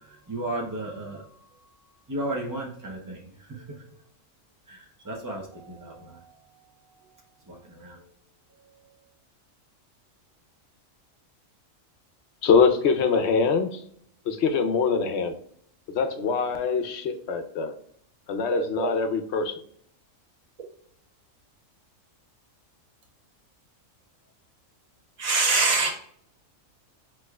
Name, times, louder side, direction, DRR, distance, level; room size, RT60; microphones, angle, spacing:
voice 1, 0.3-1.2 2.1-3.2 3.5-3.6 4.7-6.3 7.5-8.0, right 1 dB, 30° right, -2 dB, 0.4 m, -34 dB
voice 2, 12.4-13.8 14.3-15.4 15.9-17.7 18.3-19.5, left 5 dB, 60° left, 7 dB, 0.9 m, -23 dB
voice 3, 25.2-25.9, right 3 dB, 85° right, 1 dB, 1.6 m, -22 dB
6.2 x 3.0 x 2.3 m, 0.65 s
omnidirectional pair, 1.4 m